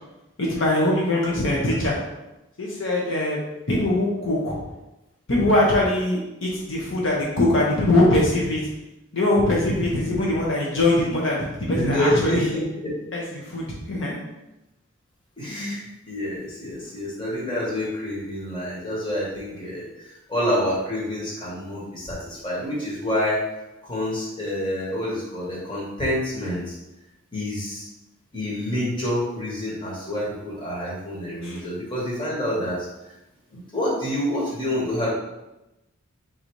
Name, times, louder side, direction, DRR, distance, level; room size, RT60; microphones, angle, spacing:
voice 1, 0.4-2.0 2.6-3.4 3.7-4.6 5.3-8.6 9.1-12.6 13.1-14.2 15.5-15.8 31.4-31.6, left 1 dB, 60° left, -4 dB, 0.9 m, -22 dB
voice 2, 11.7-13.0 15.4-23.4 23.8-26.7 27.3-27.9 28.3-32.8 33.5-35.1, left 1 dB, 25° left, -6 dB, 1.3 m, -27 dB
3.9 x 2.7 x 4.6 m, 0.96 s
head